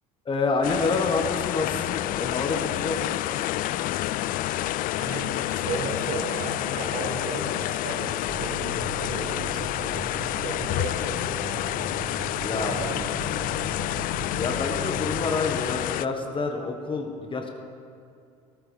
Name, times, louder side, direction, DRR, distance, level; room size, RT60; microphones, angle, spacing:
voice 1, 0.2-3.2 12.4-12.8 14.2-17.5, left 3 dB, 30° left, 3 dB, 1.6 m, -28 dB
sound 1, 0.6-16.1, left 15 dB, 55° left, 0.4 m, -29 dB
voice 2, 5.0-11.7 12.6-13.1, right 4 dB, 55° right, 0 dB, 2.9 m, -35 dB
sound 2, 8.3-15.3, right 7 dB, 35° right, 0.5 m, -39 dB
17.5 x 14.0 x 3.6 m, 2.4 s
hypercardioid pair, 70°, 17 cm